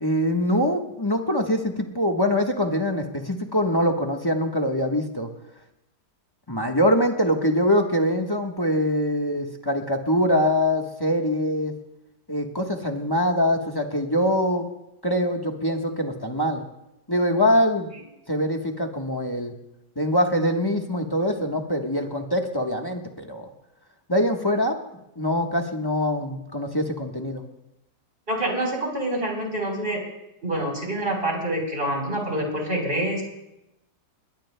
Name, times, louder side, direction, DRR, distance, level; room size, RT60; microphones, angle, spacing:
voice 1, 0.0-5.3 6.5-11.7 12.3-14.7 15.0-16.6 17.1-17.9 18.3-19.5 20.0-23.5 24.1-24.8 25.2-27.4, equal, 15° left, 2 dB, 1.1 m, -23 dB
voice 2, 28.3-30.0 30.4-33.2, right 1 dB, 30° right, 0 dB, 4.3 m, -26 dB
21.0 x 20.5 x 2.2 m, 0.88 s
omnidirectional pair, 1.8 m